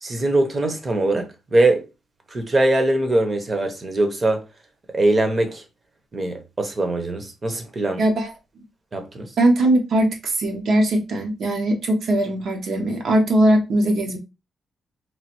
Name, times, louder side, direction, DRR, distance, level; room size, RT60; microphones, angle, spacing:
voice 1, 0.0-1.9 2.3-4.4 4.9-5.6 6.1-8.0 8.9-9.3, right 2 dB, 30° right, 0.7 m, -22 dB
voice 2, 8.0-8.3 9.4-14.2, right 1 dB, 65° right, 0.7 m, -20 dB
3.1 x 2.5 x 2.8 m
wide cardioid pair, 145°, 0 cm